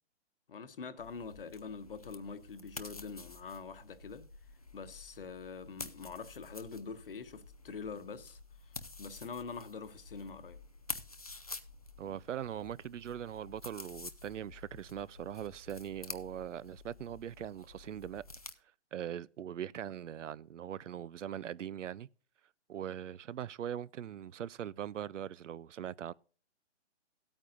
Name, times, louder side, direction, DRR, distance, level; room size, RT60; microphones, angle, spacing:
voice 1, 0.5-4.3 4.7-10.6, left 5 dB, 50° left, 1.1 m, -45 dB
sound 1, 1.0-18.5, left 3 dB, 35° left, 0.4 m, -49 dB
voice 2, 12.0-18.2 18.9-22.1 22.7-26.1, right 10 dB, 80° right, 0.6 m, -41 dB
17.0 x 8.9 x 2.5 m
hypercardioid pair, 175°, 36 cm